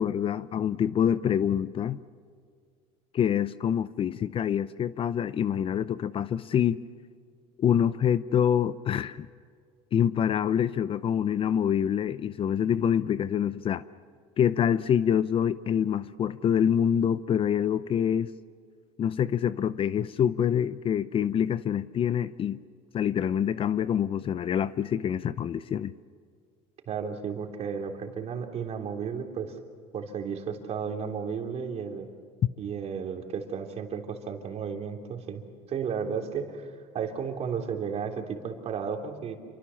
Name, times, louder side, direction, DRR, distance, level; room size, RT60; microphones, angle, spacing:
voice 1, 0.0-2.0 3.1-6.8 7.6-9.3 9.9-13.8 14.4-18.3 19.0-22.6 22.9-25.9, left 9 dB, 40° left, 0.7 m, -26 dB
voice 2, 26.9-29.6 29.9-32.1 32.6-39.4, right 6 dB, 45° right, 3.4 m, -33 dB
28.5 x 24.5 x 7.2 m
cardioid pair, 120°, 15 cm